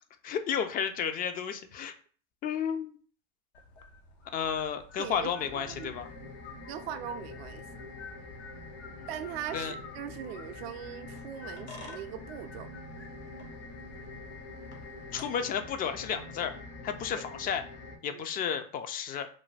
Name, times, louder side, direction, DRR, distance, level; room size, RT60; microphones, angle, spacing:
voice 1, 0.2-1.9 2.4-3.0 4.3-6.1 9.0-9.1 9.5-9.7 15.1-16.5 16.8-17.6 18.0-19.3, left 7 dB, 25° left, 0.4 m, -32 dB
sound 1, 3.5-15.3, left 2 dB, 85° left, 0.8 m, -50 dB
voice 2, 5.0-6.0 6.7-7.6 9.1-12.7 17.1-17.2 18.0-18.2, right 9 dB, 65° right, 0.5 m, -40 dB
sound 2, 5.4-18.0, left 3 dB, 45° left, 0.8 m, -46 dB
2.6 x 2.2 x 3.1 m
hypercardioid pair, 90°, 33 cm